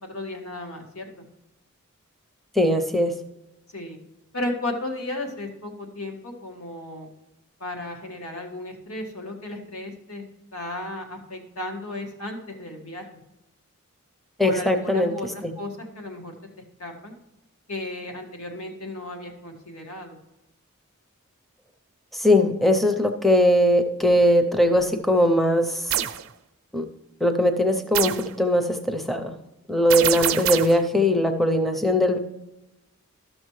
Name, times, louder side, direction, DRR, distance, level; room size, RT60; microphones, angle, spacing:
voice 1, 0.0-1.2 3.7-4.0 4.3-7.1 7.6-10.2 10.5-13.2 14.4-16.3 16.8-17.1 17.7-20.2, left 1 dB, 85° left, 2 dB, 1.7 m, -34 dB
voice 2, 2.6-3.1 14.4-15.5 22.1-26.0 26.7-26.9 27.2-29.3 29.7-32.2, left 1 dB, ahead, 4 dB, 0.5 m, -20 dB
sound 1, 25.9-26.2 27.9-28.3 29.9-30.8, right 11 dB, 70° right, 0.5 m, -25 dB
12.0 x 6.5 x 3.1 m, 0.93 s
head